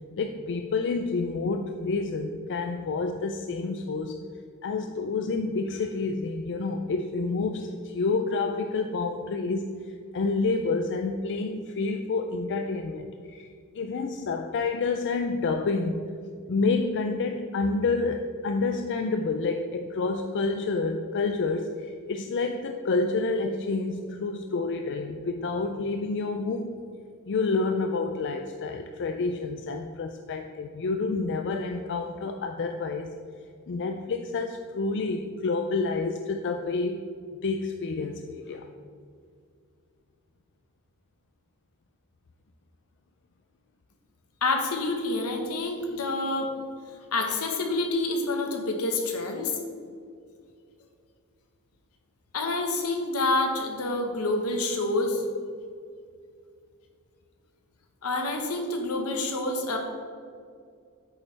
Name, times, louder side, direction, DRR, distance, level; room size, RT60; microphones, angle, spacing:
voice 1, 0.2-4.2 4.6-9.7 10.1-13.5 13.7-16.0 16.5-26.7 27.3-33.1 33.7-37.0 37.4-38.6, left 3 dB, 55° left, 5 dB, 0.4 m, -28 dB
voice 2, 44.4-46.5 47.1-49.6 52.3-55.2 58.0-59.8, left 2 dB, 80° left, 3 dB, 1.3 m, -27 dB
8.6 x 6.9 x 3.4 m, 2.2 s
head